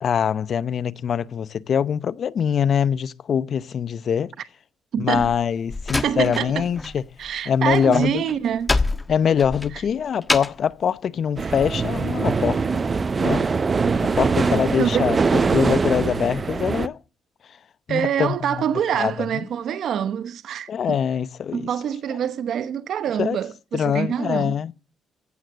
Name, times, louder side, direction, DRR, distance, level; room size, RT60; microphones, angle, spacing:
voice 1, 0.0-4.3 5.0-7.0 7.5-8.2 9.1-12.6 13.2-13.5 14.2-17.0 17.9-18.6 19.0-19.1 20.7-21.7 23.2-23.4 23.7-24.7, left 8 dB, 55° left, 0.7 m, -23 dB
voice 2, 4.9-5.3 6.0-6.7 7.2-8.8 9.7-9.8 14.8-15.1 17.9-21.0 21.5-24.5, right 9 dB, 70° right, 0.9 m, -25 dB
Slam, 5.1-7.0 7.2-10.7, left 3 dB, 20° left, 1.3 m, -27 dB
sound 1, 11.4-16.9, right 4 dB, 35° right, 0.7 m, -22 dB
15.5 x 7.8 x 7.4 m
cardioid pair, 90°, 0 cm